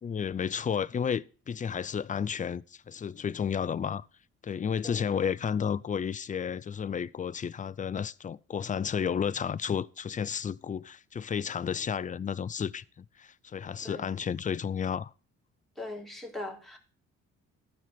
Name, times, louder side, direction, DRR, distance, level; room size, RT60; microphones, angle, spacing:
voice 1, 0.0-4.1 4.4-15.1, left 7 dB, 25° left, 0.4 m, -32 dB
voice 2, 15.8-16.8, left 2 dB, ahead, 2.4 m, -40 dB
11.5 x 4.8 x 5.9 m
hypercardioid pair, 55°, 35 cm